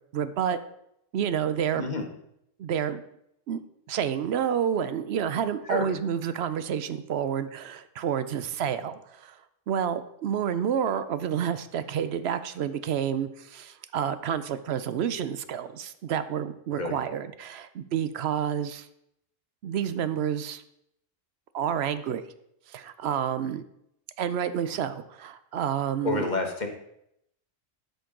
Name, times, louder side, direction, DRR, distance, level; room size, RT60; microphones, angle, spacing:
voice 1, 0.1-0.6 1.1-1.9 2.6-3.0 3.5-3.6 3.9-9.4 9.7-18.9 19.6-20.6 21.5-22.2 22.7-23.6 24.2-26.3, right 8 dB, 65° right, 12 dB, 0.7 m, -29 dB
voice 2, 26.0-26.7, left 3 dB, 35° left, 3 dB, 1.2 m, -29 dB
13.0 x 5.2 x 3.8 m, 0.76 s
omnidirectional pair, 1.3 m